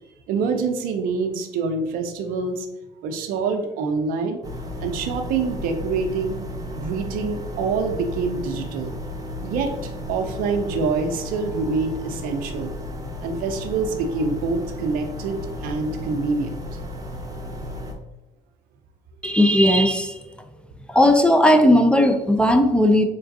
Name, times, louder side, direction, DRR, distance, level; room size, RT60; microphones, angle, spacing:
voice 1, 0.3-2.7 3.0-4.4 4.8-6.4 6.7-8.9 9.4-12.7 13.2-16.8 20.4-20.5, right 4 dB, 70° right, 6 dB, 0.6 m, -26 dB
sound 1, 4.4-17.9, left 1 dB, 25° right, 0.8 m, -34 dB
voice 2, 19.2-20.2 20.9-23.0, left 1 dB, 5° left, 6 dB, 0.5 m, -16 dB
3.7 x 3.3 x 2.7 m, 0.97 s
hypercardioid pair, 65°, 15 cm